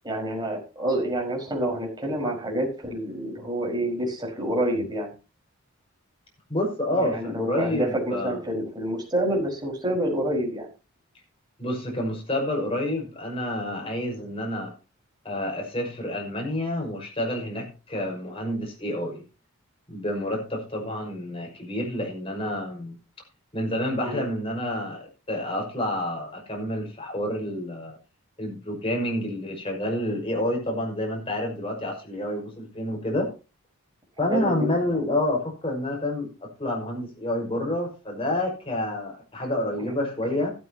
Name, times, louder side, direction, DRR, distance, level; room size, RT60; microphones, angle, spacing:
voice 1, 0.0-5.1 6.9-10.7 24.0-24.3 34.3-35.0 39.8-39.9, right 1 dB, 20° right, -1 dB, 5.2 m, -28 dB
voice 2, 6.5-8.4 11.6-14.7 15.2-19.2 19.9-23.0 23.5-28.0 28.4-33.3 34.2-40.5, left 1 dB, 25° left, 0 dB, 5.7 m, -29 dB
14.0 x 13.0 x 3.0 m, 0.32 s
head